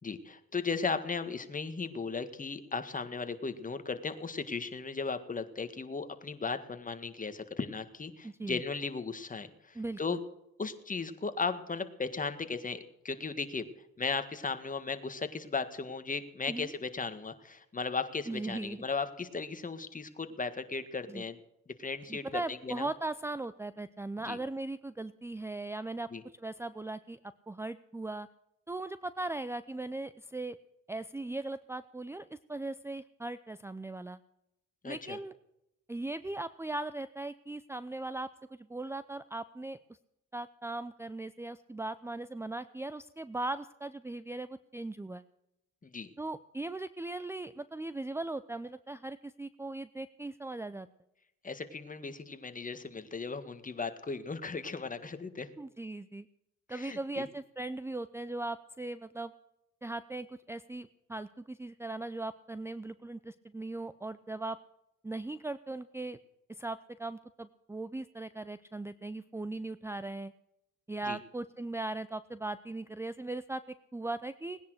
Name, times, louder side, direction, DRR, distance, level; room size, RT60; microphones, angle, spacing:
voice 1, 0.0-10.2 10.6-13.7 14.0-21.4 21.8-22.9 24.3-24.4 26.1-26.2 34.8-35.2 45.8-46.1 51.4-55.5 56.7-57.3 71.0-71.2, left 4 dB, 25° left, 9 dB, 1.7 m, -36 dB
voice 2, 8.2-8.6 9.7-10.2 16.5-16.7 18.3-18.9 21.1-21.2 22.1-26.1 26.4-27.2 27.5-28.3 28.7-30.6 30.9-34.2 34.8-35.3 35.9-39.8 40.3-45.2 46.2-50.9 55.6-56.3 56.7-59.3 59.8-64.6 65.0-66.2 66.5-70.3 70.9-74.6, right 2 dB, 10° right, 15 dB, 0.6 m, -39 dB
19.0 x 10.5 x 6.5 m, 0.84 s
cardioid pair, 90°, 30 cm